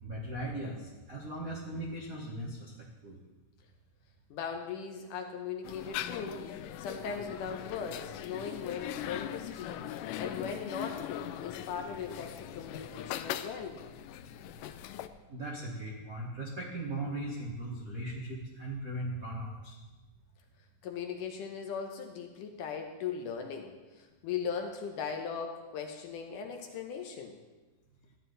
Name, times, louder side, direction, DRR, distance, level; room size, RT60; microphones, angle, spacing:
voice 1, 0.0-2.7 3.0-3.2 15.3-19.8, right 1 dB, 70° right, -3 dB, 0.8 m, -38 dB
voice 2, 4.3-6.4 6.8-9.9 10.2-13.8 20.8-27.4, left 6 dB, 75° left, 4 dB, 2.2 m, -39 dB
sound 1, 5.6-15.1, left 11 dB, 90° left, 1.8 m, -40 dB
14.5 x 9.8 x 4.0 m, 1.2 s
omnidirectional pair, 4.3 m